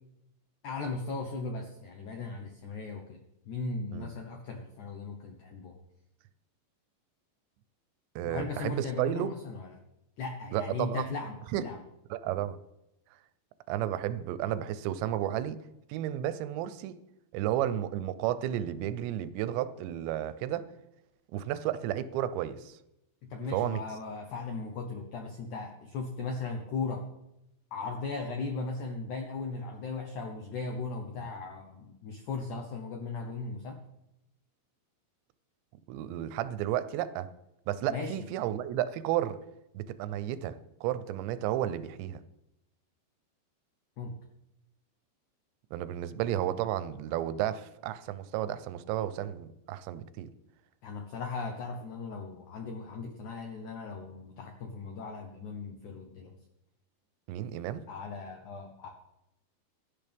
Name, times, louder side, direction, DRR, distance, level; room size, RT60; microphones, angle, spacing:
voice 1, 0.6-3.2 3.4-5.7 8.2-9.7 10.2-11.8 23.2-27.1 27.7-33.8 37.9-38.2 44.0-44.1 50.8-56.4 57.9-58.9, left 4 dB, 80° left, 4 dB, 1.7 m, -37 dB
voice 2, 8.2-9.3 10.5-11.1 11.5-11.6 12.1-12.6 13.7-15.6 15.9-17.0 17.3-20.7 21.3-22.8 23.5-23.8 31.2-31.3 35.9-37.3 37.7-39.4 39.7-42.2 45.7-50.3 57.3-57.8, right 12 dB, 85° right, 14 dB, 2.9 m, -32 dB
16.5 x 11.5 x 3.5 m, 0.87 s
omnidirectional pair, 5.1 m